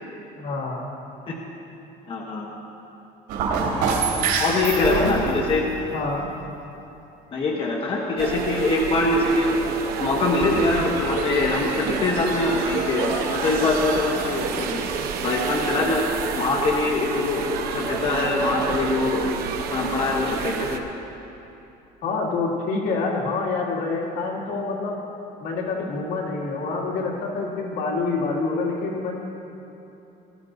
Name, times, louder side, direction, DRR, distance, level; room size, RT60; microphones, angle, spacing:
voice 1, 0.4-0.9 4.8-5.2 5.9-6.3 22.0-25.0 25.4-29.1, left 3 dB, 75° left, -3 dB, 2.6 m, -26 dB
voice 2, 2.1-2.5 3.9-4.0 4.4-5.6 7.3-9.6 10.0-14.9 15.2-16.1 16.3-19.3 19.7-20.8, left 2 dB, 35° left, -1 dB, 1.2 m, -23 dB
sound 1, 3.3-6.1 10.8-14.9 15.2-15.3, right 5 dB, 90° right, 3.0 m, -28 dB
sound 2, 8.2-20.8, right 6 dB, 65° right, 1.0 m, -29 dB
20.5 x 13.5 x 2.7 m, 2.9 s
cardioid pair, 150°, 17 cm